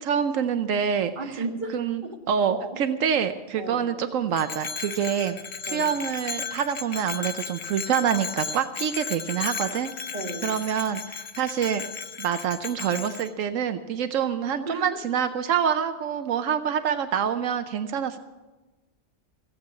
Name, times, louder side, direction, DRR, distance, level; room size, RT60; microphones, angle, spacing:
voice 1, 0.0-1.4 1.7-2.0 2.3-5.4 5.6-9.9 10.4-11.8 12.2-18.2, right 8 dB, 85° right, 9 dB, 1.1 m, -26 dB
voice 2, 1.2-1.7 2.0-2.1 2.5-2.8 3.6-3.9 5.7-6.0 10.1-10.5 14.7-15.0, right 2 dB, 40° right, 2 dB, 1.8 m, -34 dB
Bell, 4.3-13.3, left 6 dB, 60° left, 1.1 m, -35 dB
16.0 x 8.3 x 8.3 m, 1.2 s
omnidirectional pair, 1.3 m